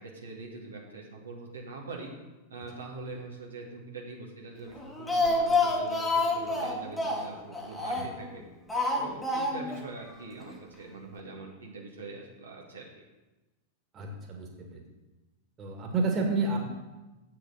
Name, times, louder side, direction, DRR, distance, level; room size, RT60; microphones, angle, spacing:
voice 1, 0.0-2.1 2.5-8.4 8.9-12.8, right 3 dB, 70° right, -1 dB, 1.5 m, -43 dB
Speech, 4.8-8.3 8.7-9.8 10.1-10.2 10.5-10.6, left 2 dB, 10° left, 1.4 m, -28 dB
voice 2, 13.9-14.8 15.6-16.6, right 3 dB, 30° right, 1 dB, 2.0 m, -30 dB
8.1 x 6.8 x 6.6 m, 1.1 s
figure-of-eight pair, 90°, 0 cm